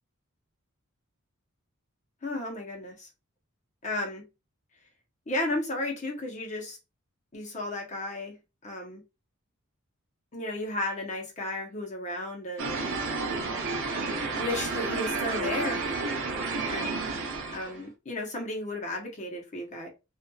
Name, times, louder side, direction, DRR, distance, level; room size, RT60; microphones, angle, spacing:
voice 1, 2.2-3.1 3.8-4.2 5.3-6.8 7.3-8.4 8.6-9.0 10.3-12.8 14.4-16.2 16.6-17.0 17.5-19.9, left 1 dB, 35° left, 0.8 m, -34 dB
sound 1, 12.6-17.8, right 3 dB, 65° right, 0.7 m, -31 dB
2.7 x 2.4 x 2.2 m
head